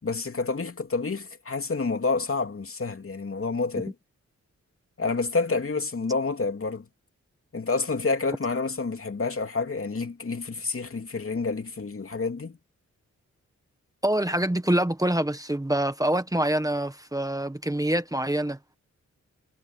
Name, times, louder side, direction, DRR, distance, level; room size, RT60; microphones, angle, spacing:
voice 1, 0.0-3.9 5.0-6.9 7.5-12.6, left 4 dB, 45° left, 3.0 m, -28 dB
voice 2, 14.0-18.6, right 1 dB, 10° right, 1.5 m, -25 dB
wide cardioid pair, 75°, 30 cm